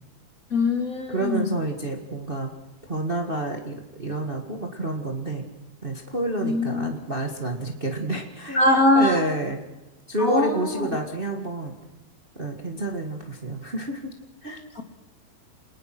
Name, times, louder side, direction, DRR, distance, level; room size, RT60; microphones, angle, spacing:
voice 1, 0.5-1.5 6.4-6.9 8.5-9.2 10.2-10.9 14.8-14.9, left 2 dB, 30° left, 4 dB, 1.9 m, -22 dB
voice 2, 1.1-2.5 2.9-5.5 5.8-8.6 8.9-9.6 10.1-11.8 12.3-14.1 14.4-14.6, right 2 dB, 85° right, 3 dB, 0.5 m, -29 dB
27.5 x 20.5 x 6.0 m, 1.0 s
omnidirectional pair, 4.6 m